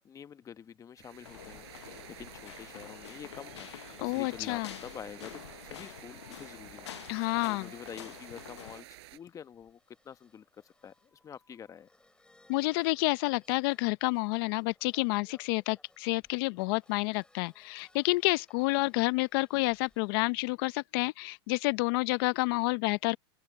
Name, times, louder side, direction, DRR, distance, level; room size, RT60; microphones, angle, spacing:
voice 1, 0.0-8.9 9.1-11.9, left 8 dB, 25° left, 1.0 m, -48 dB
sound 1, 1.0-9.2, right 17 dB, 70° right, 6.1 m, -51 dB
sound 2, 1.2-8.8, left 11 dB, 90° left, 0.8 m, -47 dB
voice 2, 4.0-4.7 7.1-7.7 12.5-23.2, left 25 dB, 60° left, 0.7 m, -29 dB
sound 3, 7.9-20.4, left 2 dB, 5° left, 6.1 m, -66 dB
open air
hypercardioid pair, 115°, 14 cm